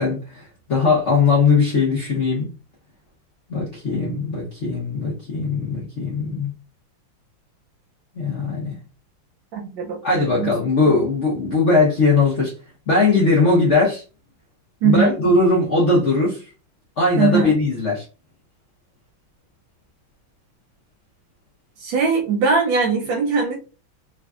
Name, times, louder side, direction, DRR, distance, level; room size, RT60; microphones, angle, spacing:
voice 1, 0.0-2.5 3.5-6.5 8.2-8.8 10.0-12.5 12.9-14.0 14.8-16.4 17.0-18.0, left 3 dB, 80° left, 0.6 m, -19 dB
voice 2, 9.5-10.5 14.8-15.2 17.2-17.5 21.8-23.6, right 5 dB, 70° right, 1.2 m, -20 dB
3.4 x 2.6 x 2.3 m
omnidirectional pair, 2.3 m